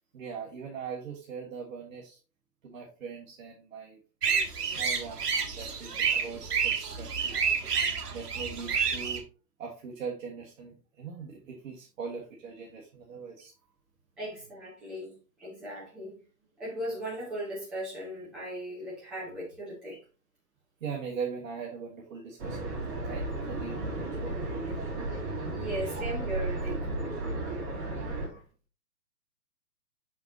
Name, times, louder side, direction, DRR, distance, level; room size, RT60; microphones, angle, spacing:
voice 1, 0.1-2.2 2.6-4.0 4.6-7.5 8.1-9.3 9.6-13.5 20.8-23.9 24.2-24.9 28.3-28.4, right 6 dB, 55° right, -3 dB, 1.6 m, -41 dB
sound 1, 4.2-9.2, right 6 dB, 70° right, 1.6 m, -29 dB
voice 2, 14.2-15.1 15.4-16.1 16.6-20.0 25.5-26.8 28.2-28.3, equal, ahead, -7 dB, 0.5 m, -37 dB
sound 2, 22.4-28.3, right 2 dB, 35° right, 3.0 m, -34 dB
6.0 x 5.7 x 2.8 m, 0.34 s
hypercardioid pair, 140°, 49 cm